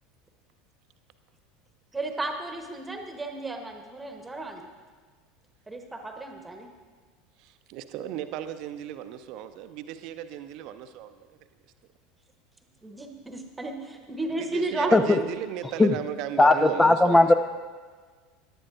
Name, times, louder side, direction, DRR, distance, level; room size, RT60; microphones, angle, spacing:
voice 1, 1.9-4.7 5.7-6.7 12.8-14.9, right 2 dB, 10° right, 4 dB, 1.1 m, -33 dB
voice 2, 7.4-11.4 14.4-17.3, right 10 dB, 50° right, 10 dB, 0.6 m, -36 dB
voice 3, 16.4-17.3, left 2 dB, 15° left, 10 dB, 0.4 m, -18 dB
17.0 x 11.0 x 2.5 m, 1.5 s
figure-of-eight pair, 75°, 0 cm